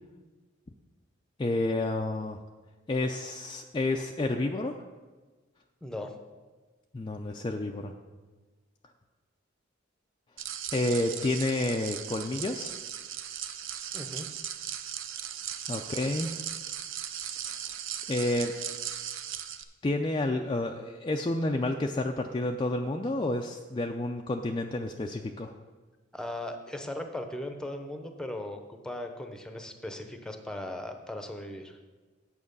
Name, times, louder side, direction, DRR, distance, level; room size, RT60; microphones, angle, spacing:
voice 1, 1.4-2.4 2.9-4.7 6.9-7.9 10.7-12.7 15.7-16.4 18.1-18.5 19.8-25.5, left 2 dB, 25° left, 3 dB, 0.4 m, -30 dB
voice 2, 5.8-6.1 13.9-14.3 26.1-31.8, left 1 dB, 5° left, 5 dB, 0.8 m, -38 dB
sound 1, 10.4-19.6, right 10 dB, 85° right, 0.6 m, -37 dB
8.7 x 7.2 x 5.4 m, 1.3 s
head